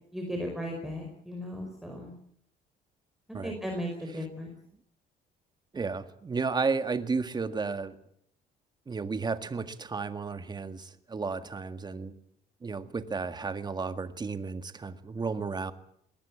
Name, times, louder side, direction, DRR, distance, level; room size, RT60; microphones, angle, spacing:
voice 1, 0.1-2.1 3.4-4.5, equal, ahead, 1 dB, 5.1 m, -36 dB
voice 2, 5.7-8.0 8.9-12.1 12.6-15.7, right 4 dB, 25° right, 10 dB, 1.8 m, -33 dB
21.5 x 18.5 x 8.6 m, 0.69 s
cardioid pair, 110°, 17 cm